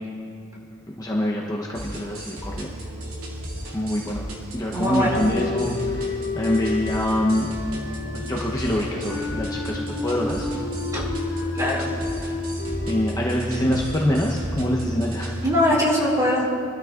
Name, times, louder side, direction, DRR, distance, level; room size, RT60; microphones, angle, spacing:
voice 1, 1.0-2.7 3.7-4.2 4.5-7.5 8.1-10.5 12.9-15.4, left 1 dB, 15° left, -3 dB, 0.7 m, -25 dB
sound 1, 1.7-15.4, equal, 75° right, 2.3 m, -33 dB
voice 2, 4.7-5.2 10.9-11.0 11.5-11.9 15.4-16.5, left 1 dB, 15° right, -4 dB, 2.3 m, -21 dB
sound 2, 5.1-14.3, left 4 dB, 50° left, 0.8 m, -32 dB
23.5 x 12.5 x 2.4 m, 2.5 s
head